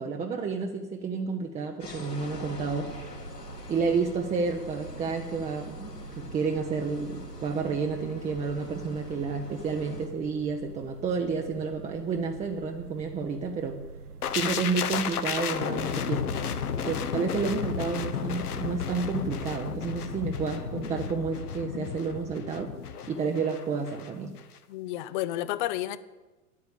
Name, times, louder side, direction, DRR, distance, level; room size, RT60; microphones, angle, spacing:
voice 1, 0.0-2.9 3.7-13.8 14.3-16.3 16.8-22.7 23.1-24.4, right 5 dB, 15° right, 3 dB, 0.8 m, -30 dB
sound 1, 1.8-10.1, left 3 dB, 85° left, 2.8 m, -44 dB
sound 2, 2.8-21.3, right 4 dB, 65° right, 0.9 m, -45 dB
sound 3, 14.2-24.1 24.4-24.6, left 7 dB, 70° left, 1.1 m, -33 dB
voice 2, 24.7-26.0, left 14 dB, 30° left, 16 dB, 0.6 m, -31 dB
10.5 x 8.4 x 8.9 m, 1.2 s
figure-of-eight pair, 100°, 47 cm